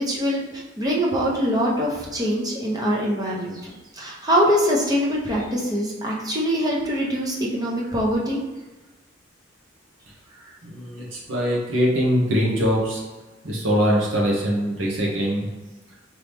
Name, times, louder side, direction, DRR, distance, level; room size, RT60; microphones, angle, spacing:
voice 1, 0.0-8.4, equal, 20° right, -4 dB, 0.7 m, -23 dB
voice 2, 10.6-13.0 13.4-15.8, equal, 90° right, -3 dB, 1.1 m, -22 dB
4.4 x 3.0 x 3.4 m, 1.1 s
head